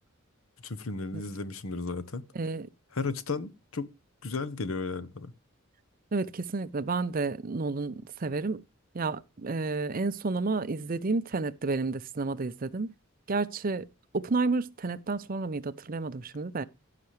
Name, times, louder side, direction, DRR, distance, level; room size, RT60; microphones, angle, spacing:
voice 1, 0.6-2.2 2.9-3.9 4.2-5.3, left 4 dB, 80° left, 0.9 m, -34 dB
voice 2, 2.3-2.7 6.1-7.9 8.2-8.6 8.9-12.9 13.3-13.9 14.1-16.6, right 3 dB, 40° right, 0.6 m, -30 dB
16.0 x 5.8 x 3.2 m
head